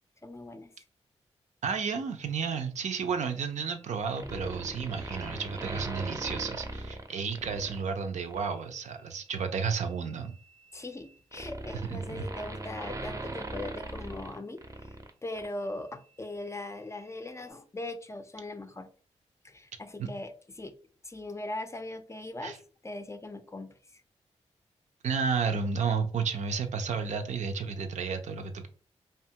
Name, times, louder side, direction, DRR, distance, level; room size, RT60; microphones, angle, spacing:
voice 1, 0.2-0.7 10.7-18.9 19.4-20.7 21.0-22.6 22.8-24.0, left 2 dB, 25° left, 9 dB, 0.4 m, -40 dB
voice 2, 1.6-10.3 11.9-12.2 20.0-20.1 22.4-22.6 25.0-28.7, right 5 dB, 70° right, 7 dB, 0.5 m, -32 dB
sound 1, 4.1-7.8 8.3-8.5 9.7-15.1 15.4-15.5, right 2 dB, 25° right, 0.6 m, -39 dB
2.8 x 2.2 x 2.8 m, 0.41 s
cardioid pair, 55°, 12 cm